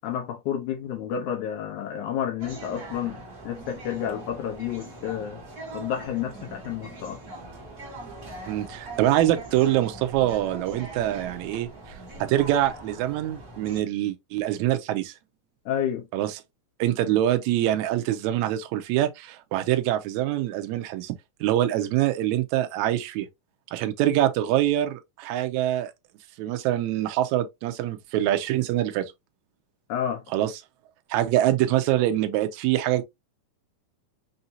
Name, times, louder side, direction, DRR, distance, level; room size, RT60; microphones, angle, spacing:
voice 1, 0.0-3.2 3.4-5.4 5.7-7.2 15.7-16.1 29.9-30.2, left 9 dB, 75° left, 2.1 m, -30 dB
sound 1, 2.4-13.8, right 2 dB, 40° right, 1.5 m, -41 dB
voice 2, 8.5-15.1 16.1-16.4 16.8-21.2 21.4-23.3 23.7-25.9 26.4-29.1 30.3-30.5 31.1-33.0, right 13 dB, 75° right, 1.8 m, -24 dB
5.6 x 2.6 x 2.7 m
omnidirectional pair, 3.8 m